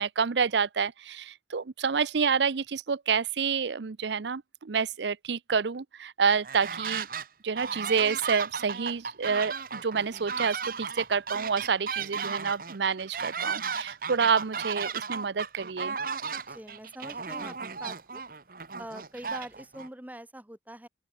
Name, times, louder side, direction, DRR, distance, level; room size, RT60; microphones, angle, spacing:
voice 1, 0.0-7.1 7.4-16.0, right 6 dB, 75° right, 0.6 m, -28 dB
sound 1, 6.3-7.3 7.6-19.9, right 5 dB, 50° right, 1.2 m, -35 dB
voice 2, 16.5-18.2 18.8-20.9, right 1 dB, 10° right, 1.0 m, -44 dB
open air
head